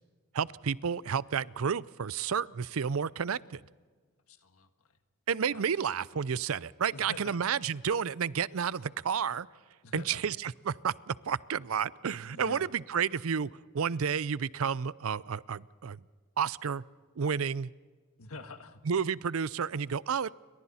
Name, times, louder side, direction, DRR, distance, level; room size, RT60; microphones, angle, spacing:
voice 1, 0.3-3.6 5.3-9.5 9.9-13.5 13.7-16.0 16.4-16.8 17.2-17.7 18.9-20.3, right 7 dB, 70° right, 20 dB, 0.5 m, -31 dB
voice 2, 4.3-4.7 5.5-5.6 6.9-7.4 9.8-10.2 12.2-12.7 18.2-18.8, left 3 dB, 85° left, 8 dB, 1.6 m, -46 dB
29.5 x 23.5 x 4.3 m, 1.5 s
head